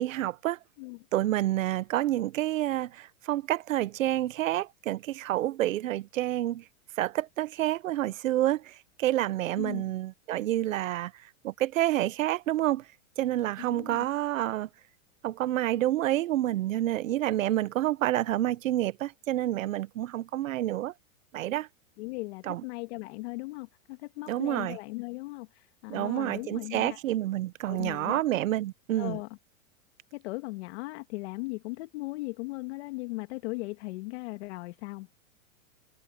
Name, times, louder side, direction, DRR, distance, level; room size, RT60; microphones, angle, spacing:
voice 1, 0.0-0.6 1.1-6.6 7.0-12.8 13.2-14.7 15.2-20.9 21.3-21.7 22.5-22.6 24.3-24.8 25.9-29.2, right 14 dB, 75° right, 1.3 m, -28 dB
voice 2, 9.6-9.9 13.6-14.1 22.0-27.0 27.7-28.2 29.0-29.3 30.1-35.1, left 24 dB, 55° left, 2.0 m, -38 dB
hypercardioid pair, 135°, 40 cm